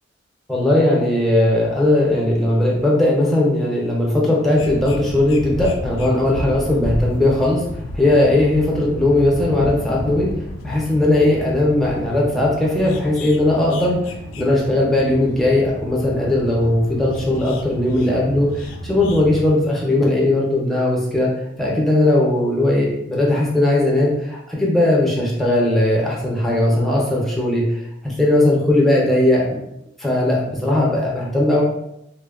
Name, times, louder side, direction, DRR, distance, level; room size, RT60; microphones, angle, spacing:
voice 1, 0.5-7.6 7.9-10.3 10.6-21.3 21.6-29.6 30.0-31.6, left 1 dB, ahead, -4 dB, 0.4 m, -18 dB
sound 1, 4.5-19.5, left 1 dB, 90° left, 0.4 m, -31 dB
2.9 x 2.0 x 2.3 m, 0.81 s
head